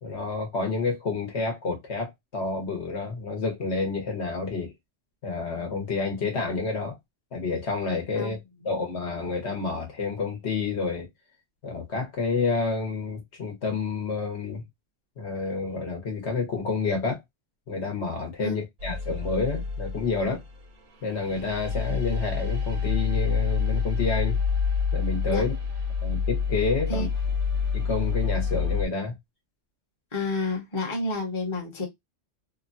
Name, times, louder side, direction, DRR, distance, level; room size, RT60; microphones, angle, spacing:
voice 1, 0.0-4.7 5.2-7.0 7.3-8.4 8.6-11.1 11.6-14.6 15.2-17.2 17.7-20.4 21.0-24.4 24.9-25.5 26.0-27.1 27.7-29.1, left 4 dB, 65° left, 1.2 m, -29 dB
sound 1, 18.8-20.6 21.1-28.9, left 6 dB, 50° right, 0.8 m, -27 dB
voice 2, 30.1-31.9, left 2 dB, 25° left, 0.9 m, -30 dB
2.9 x 2.2 x 2.5 m
omnidirectional pair, 1.3 m